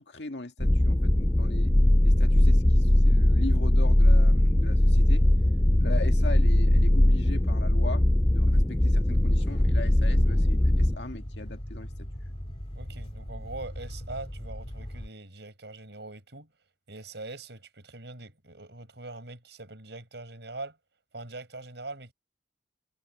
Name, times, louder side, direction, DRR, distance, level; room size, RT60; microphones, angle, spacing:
voice 1, 0.0-1.7 2.0-5.3 5.8-12.1, left 2 dB, 70° left, 1.9 m, -40 dB
sound 1, 0.6-11.0, left 1 dB, 10° left, 0.4 m, -21 dB
sound 2, 9.4-15.1, equal, 35° left, 1.9 m, -40 dB
voice 2, 12.7-16.5 16.9-20.8 21.1-22.1, right 2 dB, 70° right, 6.8 m, -42 dB
head